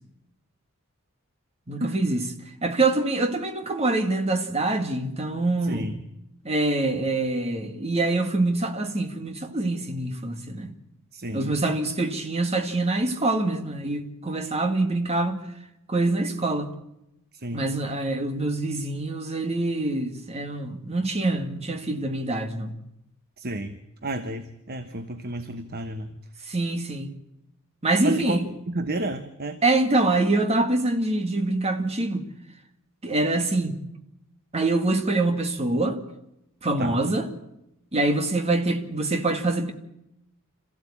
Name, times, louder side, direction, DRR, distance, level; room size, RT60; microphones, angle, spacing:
voice 1, 1.7-2.2 2.6-5.9 6.4-10.7 11.3-15.4 15.9-16.7 17.5-22.7 26.5-27.1 27.8-28.4 29.6-32.3 33.0-33.8 34.5-36.0 36.6-37.3 37.9-39.7, right 2 dB, 30° right, 1.9 m, -25 dB
voice 2, 5.6-6.0 11.1-11.5 17.3-17.7 23.4-26.1 28.0-29.6 36.8-37.0, right 1 dB, 45° right, 1.2 m, -31 dB
26.5 x 15.5 x 8.6 m
head